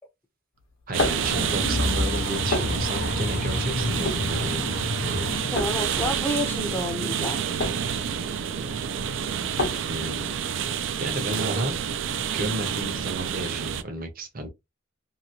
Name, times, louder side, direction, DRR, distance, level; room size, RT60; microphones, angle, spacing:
sound 1, 0.6-12.1, left 2 dB, 80° left, 0.9 m, -34 dB
voice 1, 0.9-4.7 9.9-10.6 11.0-11.8 12.2-14.5, right 1 dB, 45° right, 0.8 m, -32 dB
sound 2, 0.9-13.8, right 8 dB, 65° right, 0.4 m, -29 dB
sound 3, 1.0-6.0, left 2 dB, 55° left, 0.6 m, -30 dB
voice 2, 5.5-7.4 11.3-11.7, left 1 dB, 10° left, 0.6 m, -30 dB
2.9 x 2.7 x 2.7 m
head